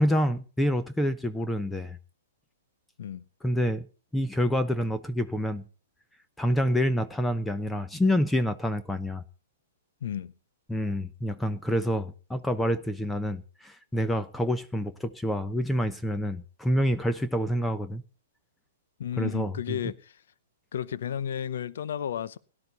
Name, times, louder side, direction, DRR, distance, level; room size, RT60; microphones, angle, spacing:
voice 1, 0.0-2.0 3.4-3.9 4.1-5.6 6.4-9.2 10.7-18.0 19.2-19.8, equal, 5° left, 0.8 m, -27 dB
voice 2, 10.0-10.3 19.0-20.2 20.7-22.4, left 9 dB, 65° left, 0.7 m, -33 dB
17.5 x 11.5 x 4.1 m
hypercardioid pair, 120°, 0 cm